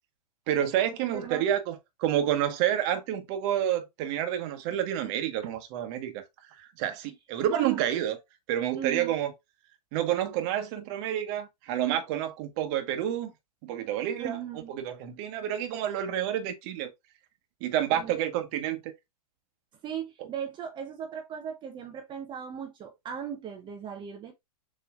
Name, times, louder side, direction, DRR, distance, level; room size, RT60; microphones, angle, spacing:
voice 1, 0.5-6.2 6.6-8.2 8.5-9.3 9.9-13.3 13.6-14.4 14.8-16.9 17.6-18.9, right 11 dB, 40° right, 1.1 m, -29 dB
voice 2, 1.1-1.5 7.5-7.8 8.8-9.1 14.2-14.8 17.9-18.2 19.8-24.3, right 8 dB, 20° right, 0.7 m, -37 dB
6.8 x 3.1 x 2.4 m
figure-of-eight pair, 110°, 21 cm